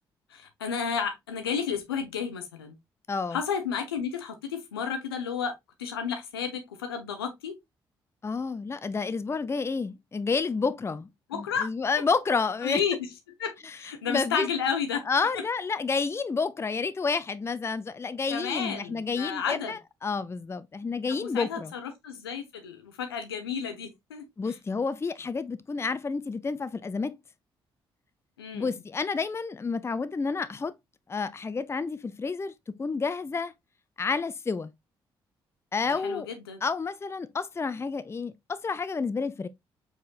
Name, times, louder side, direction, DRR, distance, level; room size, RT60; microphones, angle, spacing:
voice 1, 0.3-2.8 3.3-5.5 5.8-7.6 11.3-11.7 12.6-13.0 13.4-15.0 15.4-15.5 18.3-19.8 21.1-24.2 28.4-28.7 35.9-36.6, left 7 dB, 85° left, 0.7 m, -32 dB
voice 2, 3.1-3.4 8.2-12.8 13.6-13.8 14.1-14.5 15.1-21.7 24.4-27.2 28.5-30.7 31.1-32.5 32.8-33.5 34.0-34.7 35.7-36.3 36.6-39.5, left 4 dB, 20° left, 0.4 m, -30 dB
4.6 x 4.3 x 2.3 m
figure-of-eight pair, 40°, 12 cm